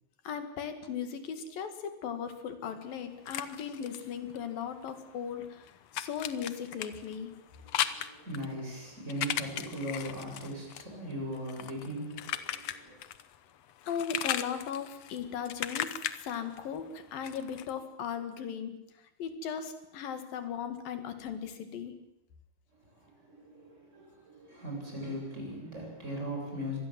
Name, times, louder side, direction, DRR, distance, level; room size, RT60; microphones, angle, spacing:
voice 1, 0.3-5.6 5.9-7.3 13.9-15.9 16.2-18.8 19.2-22.0, left 7 dB, 85° left, 8 dB, 3.8 m, -37 dB
sound 1, 2.8-5.0 5.2-13.4 13.6-17.7, left 11 dB, 65° left, 1.7 m, -37 dB
voice 2, 7.6-13.0 23.0-26.8, equal, 20° right, 0 dB, 7.9 m, -39 dB
25.5 x 20.0 x 7.6 m, 0.85 s
omnidirectional pair, 4.0 m